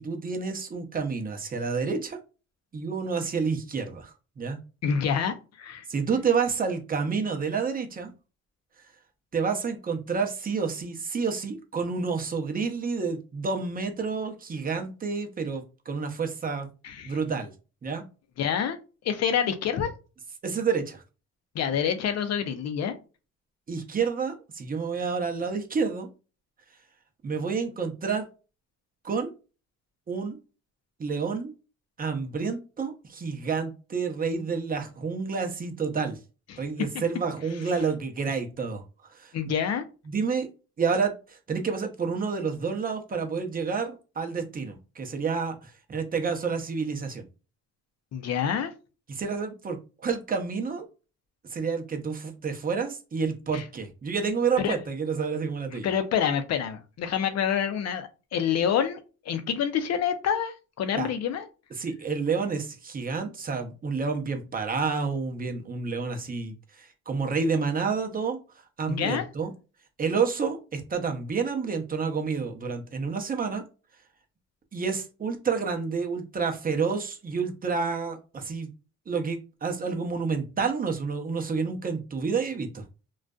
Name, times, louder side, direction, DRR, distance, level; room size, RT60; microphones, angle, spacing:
voice 1, 0.0-2.2 2.7-4.6 5.9-8.1 9.3-16.7 17.0-17.5 17.8-18.0 20.4-21.0 23.7-26.1 27.2-28.2 29.0-29.3 30.1-30.4 31.0-31.5 32.0-36.2 36.6-38.8 39.1-39.3 40.1-40.5 40.8-47.3 49.1-50.9 51.5-55.9 60.9-61.1 61.8-68.4 68.8-69.5 70.0-73.6 74.7-78.7 79.1-82.8, right 5 dB, 30° right, 4 dB, 0.6 m, -29 dB
voice 2, 4.8-5.9 16.8-17.2 18.4-18.8 19.0-19.9 21.5-23.0 36.5-36.6 39.3-39.8 48.1-48.7 53.5-53.6 54.6-54.8 55.8-61.5 68.9-69.3, left 8 dB, 60° left, 9 dB, 0.5 m, -27 dB
2.5 x 2.3 x 2.2 m, 0.32 s
cardioid pair, 90°, 30 cm